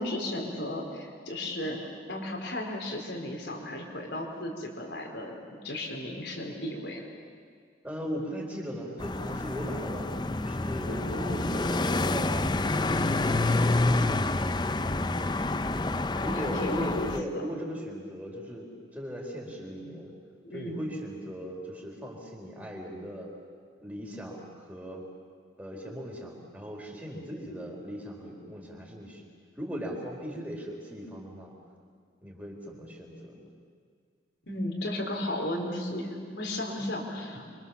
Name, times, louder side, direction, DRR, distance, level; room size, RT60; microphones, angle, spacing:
voice 1, 0.0-7.1 10.9-11.5 16.1-17.5 20.4-20.8 34.5-37.4, left 1 dB, 70° left, 1 dB, 4.5 m, -35 dB
voice 2, 7.8-10.1 10.4-13.0 15.1-15.4 16.2-18.7 18.9-20.1 20.5-23.3 23.8-25.0 25.6-29.2 29.6-31.5 32.2-33.5 37.3-37.5, equal, 10° right, -1 dB, 4.3 m, -38 dB
sound 1, 9.0-17.2, left 2 dB, 25° left, 0.6 m, -28 dB
27.0 x 24.5 x 7.2 m, 2.1 s
head